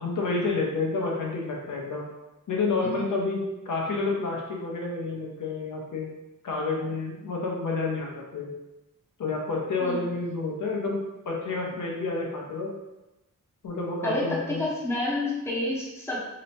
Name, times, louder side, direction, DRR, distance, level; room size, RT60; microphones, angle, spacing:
voice 1, 0.0-2.0 2.5-6.1 6.4-8.5 9.2-12.7 13.6-14.6, left 3 dB, 70° left, -2 dB, 0.7 m, -29 dB
voice 2, 14.0-16.2, left 1 dB, 10° left, -5 dB, 0.7 m, -29 dB
3.0 x 2.1 x 4.1 m, 1.0 s
wide cardioid pair, 150°, 33 cm